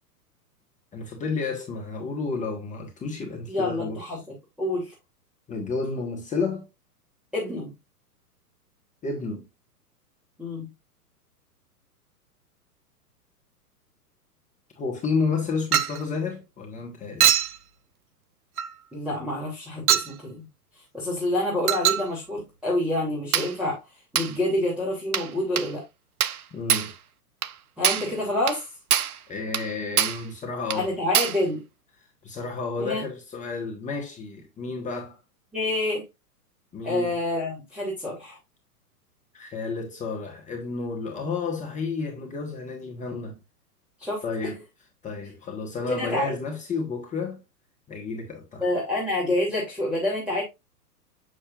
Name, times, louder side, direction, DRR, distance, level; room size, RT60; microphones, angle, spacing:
voice 1, 0.9-4.2 5.5-6.7 9.0-9.4 14.8-17.2 26.5-26.9 28.1-28.2 29.3-30.9 32.2-35.2 36.7-37.1 39.3-43.4 44.2-44.6 45.0-47.4 47.9-48.7, left 4 dB, 15° left, 1.5 m, -31 dB
voice 2, 3.5-4.2 4.6-4.9 7.3-7.7 10.4-10.7 18.9-20.4 20.9-23.8 24.1-25.8 27.8-28.6 30.7-31.6 32.8-33.0 35.5-36.0 36.8-38.4 44.0-44.2 45.9-46.3 48.6-50.4, left 1 dB, ahead, 2.8 m, -27 dB
Chink clink, 15.7-16.0 17.2-17.6 18.6-18.7 19.9-20.1 21.7-22.1 23.3-23.6 24.2-24.4 25.1-25.3 25.6-25.7 26.2-26.4 26.7-26.9 27.4-27.5 27.8-28.1 28.5-28.6 28.9-29.2 29.5-29.7 30.0-30.3 30.7-30.8 31.1-31.4, right 9 dB, 65° right, 0.8 m, -23 dB
7.8 x 6.4 x 2.5 m
figure-of-eight pair, 110°, 47 cm